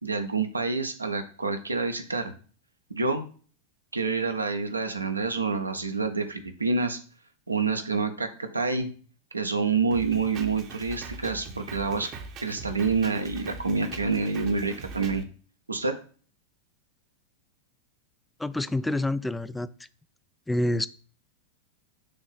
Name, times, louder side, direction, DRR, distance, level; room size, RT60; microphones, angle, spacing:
voice 1, 0.0-2.3 2.9-3.3 3.9-7.0 7.5-8.9 9.3-12.1 12.4-15.2 15.7-15.9, right 4 dB, 80° right, 7 dB, 0.7 m, -27 dB
Drum kit, 9.9-15.2, right 4 dB, 35° right, 0.8 m, -41 dB
voice 2, 18.4-19.7 20.5-20.9, left 1 dB, 5° left, 15 dB, 0.3 m, -27 dB
6.6 x 2.7 x 5.7 m, 0.41 s
figure-of-eight pair, 90°, 0 cm